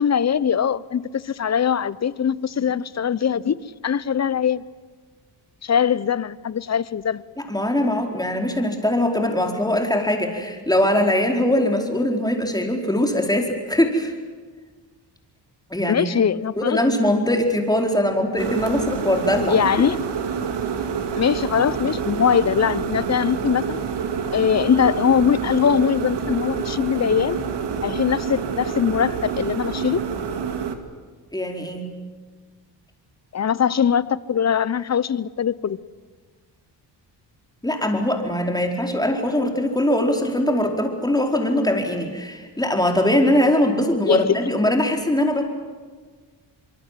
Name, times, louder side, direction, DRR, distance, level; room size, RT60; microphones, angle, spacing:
voice 1, 0.0-3.6 3.8-4.6 5.6-7.2 15.9-16.8 19.5-20.0 21.2-23.8 24.3-27.4 27.8-30.0 33.3-35.8 44.1-44.5, left 8 dB, 40° left, 0.8 m, -21 dB
voice 2, 7.4-14.1 15.7-16.2 16.6-19.5 31.3-31.9 37.6-45.4, left 1 dB, 10° left, 4.6 m, -21 dB
sound 1, 18.4-30.8, right 6 dB, 70° right, 2.3 m, -27 dB
25.0 x 23.5 x 7.7 m
cardioid pair, 75°, 43 cm